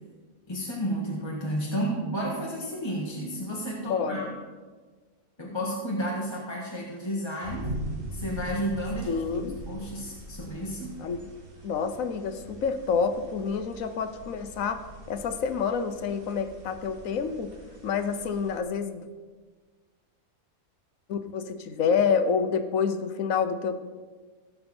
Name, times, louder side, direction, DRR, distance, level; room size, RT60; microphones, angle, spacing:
voice 1, 0.5-4.4 5.4-7.7 8.1-9.2 9.6-11.0, equal, 20° left, -4 dB, 1.5 m, -32 dB
voice 2, 3.9-4.3 9.1-9.6 11.0-11.3 11.6-14.8 15.1-17.5 17.8-19.1 21.1-23.7, left 6 dB, 70° left, 9 dB, 1.1 m, -28 dB
sound 1, 7.4-18.6, right 1 dB, 40° right, 1.6 m, -41 dB
16.5 x 6.7 x 4.3 m, 1.4 s
omnidirectional pair, 1.5 m